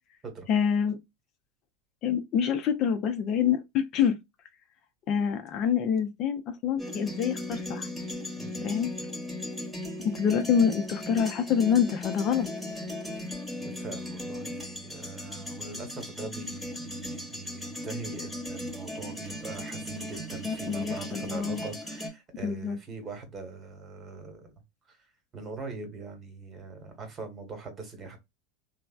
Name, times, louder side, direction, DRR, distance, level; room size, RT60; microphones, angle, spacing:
voice 1, 0.5-1.0 2.0-4.2 5.1-7.9 8.6-8.9 10.2-12.5 20.5-21.6 22.4-22.8, left 7 dB, 45° left, 0.5 m, -26 dB
sound 1, 6.8-22.1, left 1 dB, 5° left, 1.1 m, -37 dB
voice 2, 8.4-8.7 13.6-24.5 24.9-28.2, right 4 dB, 30° right, 1.2 m, -42 dB
3.1 x 2.0 x 2.3 m
figure-of-eight pair, 80°, 0 cm